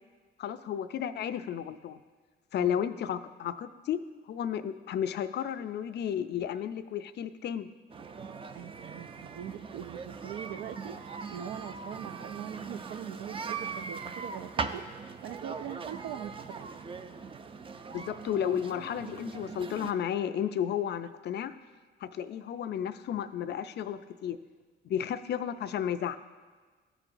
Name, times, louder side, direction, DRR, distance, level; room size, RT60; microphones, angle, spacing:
voice 1, 0.4-2.0 2.5-4.0 4.3-7.7 17.9-21.5 22.0-24.4 24.8-26.2, left 9 dB, 60° left, 11 dB, 0.4 m, -33 dB
sound 1, 7.9-19.9, right 5 dB, 25° right, 0.4 m, -40 dB
voice 2, 8.5-16.7, right 10 dB, 85° right, 12 dB, 0.4 m, -42 dB
13.5 x 4.9 x 2.6 m, 1.4 s
cardioid pair, 90°, 20 cm